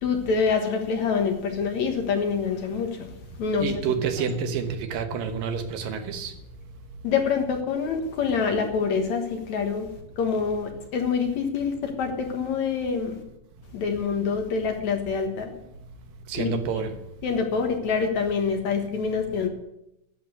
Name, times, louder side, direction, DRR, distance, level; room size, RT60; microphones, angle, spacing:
voice 1, 0.0-3.1 3.4-3.8 7.0-9.9 10.2-13.2 13.7-15.5 16.3-16.5 17.2-19.5, left 5 dB, 60° left, 4 dB, 2.5 m, -26 dB
voice 2, 3.6-6.3 16.3-16.9, right 6 dB, 75° right, 7 dB, 2.8 m, -28 dB
11.5 x 7.8 x 9.5 m, 0.85 s
omnidirectional pair, 4.1 m